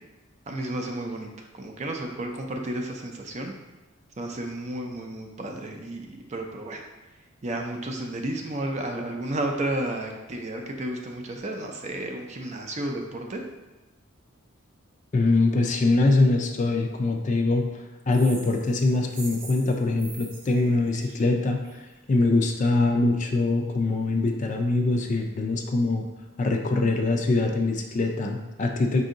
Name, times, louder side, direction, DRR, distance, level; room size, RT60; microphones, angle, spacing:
voice 1, 0.5-1.3 1.5-3.5 4.2-6.8 7.4-13.4, right 1 dB, 35° right, 2 dB, 0.5 m, -32 dB
voice 2, 15.1-21.8 22.1-26.0 26.4-29.0, left 2 dB, 35° left, 3 dB, 0.4 m, -23 dB
sound 1, 18.1-21.9, right 3 dB, 55° right, 0.8 m, -44 dB
5.2 x 2.7 x 3.7 m, 1.1 s
head